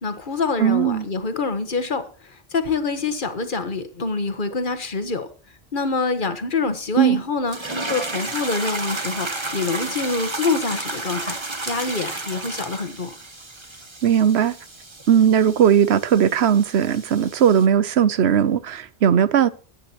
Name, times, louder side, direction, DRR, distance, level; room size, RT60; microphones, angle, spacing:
voice 1, 0.0-5.3 5.7-7.6 7.9-11.4 11.7-13.2, left 4 dB, 55° left, 1.5 m, -26 dB
voice 2, 0.6-1.1 7.0-7.2 14.0-14.5 15.1-19.5, right 9 dB, 90° right, 1.0 m, -18 dB
sound 1, 7.5-17.7, right 2 dB, 25° right, 1.4 m, -32 dB
21.0 x 9.0 x 2.9 m
omnidirectional pair, 1.1 m